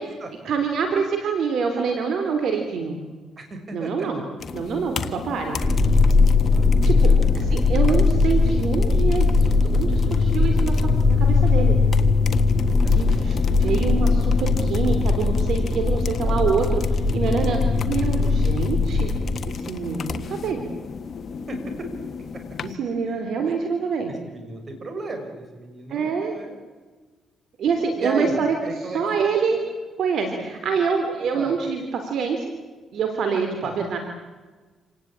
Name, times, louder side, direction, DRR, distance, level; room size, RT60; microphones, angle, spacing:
voice 1, 0.4-3.0 3.7-4.2 4.5-5.6 6.8-7.1 7.3-11.8 12.9-19.2 19.4-20.6 22.6-24.1 25.9-26.4 27.6-29.7 30.0-32.5 32.9-34.0, right 5 dB, 70° right, 5 dB, 3.3 m, -26 dB
voice 2, 3.4-4.1 6.5-6.9 21.5-21.6 23.0-23.2 24.1-26.6 28.0-29.0 31.3-31.5 33.6-33.8, right 2 dB, 40° right, 6 dB, 6.3 m, -34 dB
sound 1, 4.4-22.8, left 5 dB, 50° left, 1.5 m, -33 dB
sound 2, 5.6-19.3, left 4 dB, ahead, 3.4 m, -19 dB
27.5 x 18.5 x 8.9 m, 1.3 s
cardioid pair, 90°, 0 cm